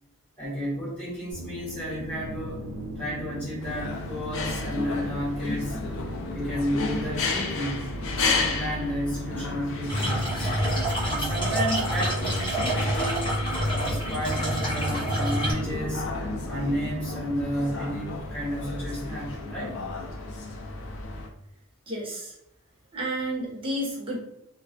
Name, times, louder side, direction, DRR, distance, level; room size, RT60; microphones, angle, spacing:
voice 1, 0.4-2.6 2.9-5.8 6.3-7.8 8.2-10.5 11.0-13.2 13.7-16.0 16.4-19.7, equal, 5° left, -9 dB, 1.4 m, -32 dB
sound 1, 1.3-17.4, equal, 60° right, 1.0 m, -39 dB
sound 2, 3.6-21.3, left 3 dB, 65° left, 0.4 m, -33 dB
sound 3, 9.9-15.5, right 1 dB, 25° left, 0.8 m, -27 dB
voice 2, 21.9-22.3 22.9-24.2, right 1 dB, 25° right, -4 dB, 0.7 m, -31 dB
2.3 x 2.3 x 2.4 m, 0.83 s
head